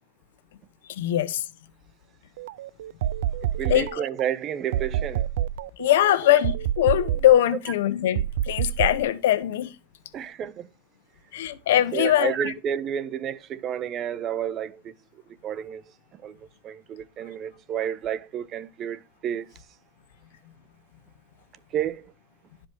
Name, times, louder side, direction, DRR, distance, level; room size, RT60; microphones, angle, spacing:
voice 1, 0.9-1.4 3.7-4.0 5.8-9.7 11.3-12.5, left 12 dB, 80° left, 1.2 m, -22 dB
sound 1, 2.4-4.3 4.7-7.5 8.2-9.0, right 11 dB, 80° right, 0.5 m, -28 dB
voice 2, 3.6-5.2 10.1-10.7 11.9-14.9 15.4-15.8 16.1-19.6 21.7-22.1, right 9 dB, 35° right, 0.8 m, -31 dB
12.0 x 5.1 x 4.6 m
supercardioid pair, 130°, 0 cm